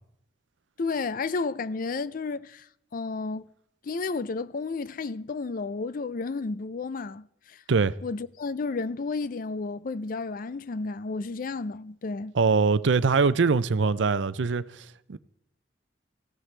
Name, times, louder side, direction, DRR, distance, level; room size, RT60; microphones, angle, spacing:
voice 1, 0.8-2.7 2.9-3.5 3.8-7.6 8.0-12.3, left 4 dB, 50° left, 0.4 m, -32 dB
voice 2, 12.3-15.2, right 4 dB, 75° right, 0.5 m, -23 dB
18.0 x 15.0 x 3.3 m
head